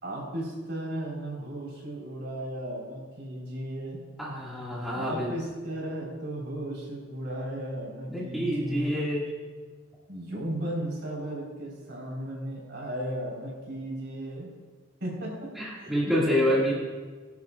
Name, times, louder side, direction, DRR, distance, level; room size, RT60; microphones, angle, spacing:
voice 1, 0.0-4.1 4.9-8.9 10.1-14.5 15.0-16.7, right 1 dB, 60° right, -3 dB, 4.3 m, -35 dB
voice 2, 4.2-5.3 8.1-9.2 15.6-16.7, equal, ahead, -7 dB, 2.1 m, -27 dB
21.0 x 10.5 x 2.5 m, 1.4 s
head